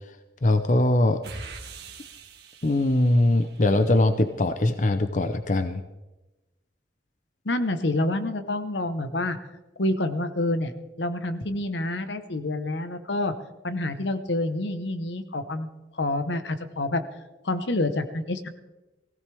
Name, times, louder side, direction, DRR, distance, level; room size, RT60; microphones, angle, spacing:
voice 1, 0.4-1.2 2.6-5.8, left 1 dB, 45° left, 9 dB, 0.6 m, -21 dB
sound 1, 1.2-4.0, right 4 dB, 60° right, 2.0 m, -43 dB
voice 2, 7.4-9.4 9.8-10.7 11.0-13.3 13.6-15.7 16.0-17.0 17.4-18.5, left 2 dB, 80° left, 10 dB, 1.1 m, -27 dB
18.5 x 16.0 x 3.5 m, 1.0 s
head